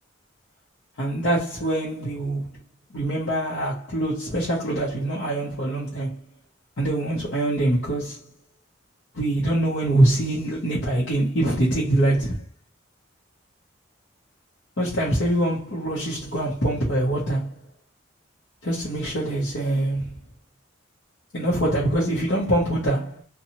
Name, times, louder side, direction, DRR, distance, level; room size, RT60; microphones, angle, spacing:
voice 1, 1.0-2.5 2.9-6.2 6.8-8.2 9.1-12.4 14.8-17.5 18.6-20.1 21.3-23.2, right 1 dB, 65° left, 0.8 m, -24 dB
2.7 x 2.2 x 2.9 m
head